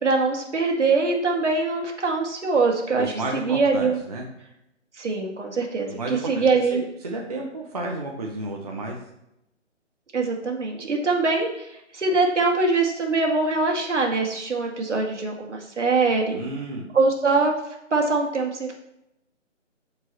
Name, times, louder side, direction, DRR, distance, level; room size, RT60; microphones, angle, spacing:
voice 1, 0.0-4.0 5.0-6.8 10.1-16.3 16.9-17.5 17.9-18.7, right 3 dB, 65° right, 1 dB, 2.2 m, -23 dB
voice 2, 2.9-4.2 5.9-6.4 6.7-9.0 16.3-16.8, right 2 dB, 30° right, -1 dB, 0.8 m, -32 dB
14.5 x 4.9 x 3.0 m, 0.82 s
hypercardioid pair, 170°, 37 cm